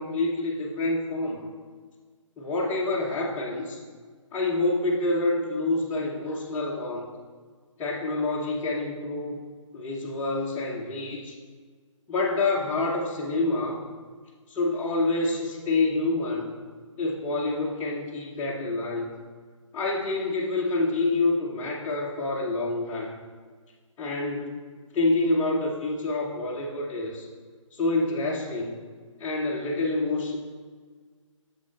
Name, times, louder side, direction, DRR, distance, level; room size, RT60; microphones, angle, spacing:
voice 1, 0.0-1.4 2.4-3.8 4.3-7.1 7.8-9.4 9.7-11.4 12.1-13.8 14.5-16.5 17.0-19.1 19.7-23.2 24.0-24.6 24.9-27.3 27.7-28.8 29.2-30.4, left 2 dB, 10° left, -6 dB, 0.6 m, -27 dB
8.8 x 6.3 x 3.2 m, 1.6 s
figure-of-eight pair, 150°, 17 cm